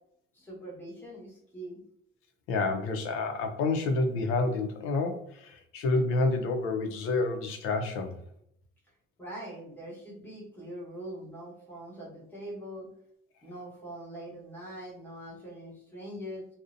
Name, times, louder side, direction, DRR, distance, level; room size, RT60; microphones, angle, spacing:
voice 1, 0.3-1.8 9.2-12.9 13.4-16.5, right 1 dB, 10° left, -6 dB, 1.1 m, -42 dB
voice 2, 2.5-8.2, left 3 dB, 85° left, 5 dB, 0.5 m, -29 dB
2.6 x 2.1 x 2.5 m, 0.70 s
cardioid pair, 140°, 21 cm